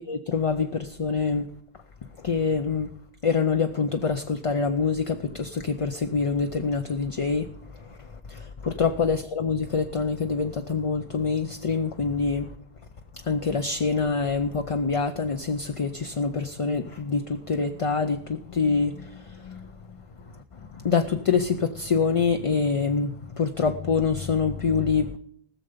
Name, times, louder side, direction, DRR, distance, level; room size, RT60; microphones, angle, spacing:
voice 1, 0.0-1.5 2.2-2.9 3.2-7.5 8.3-12.5 13.3-19.7 20.7-25.2, left 5 dB, 40° left, 0.5 m, -25 dB
19.5 x 6.8 x 5.2 m
omnidirectional pair, 1.1 m